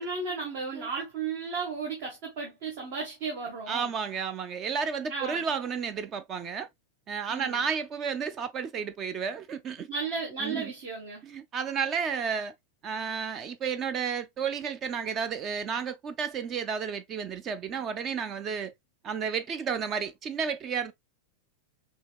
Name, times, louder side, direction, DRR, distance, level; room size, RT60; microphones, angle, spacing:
voice 1, 0.0-3.9 5.1-5.5 7.3-7.7 9.9-11.2, right 4 dB, 50° right, 1.6 m, -34 dB
voice 2, 3.7-6.7 7.1-9.9 10.4-10.7 11.2-12.5 12.8-18.7 19.0-20.9, right 6 dB, 30° right, 0.5 m, -32 dB
5.7 x 2.8 x 2.3 m
figure-of-eight pair, 90°, 0 cm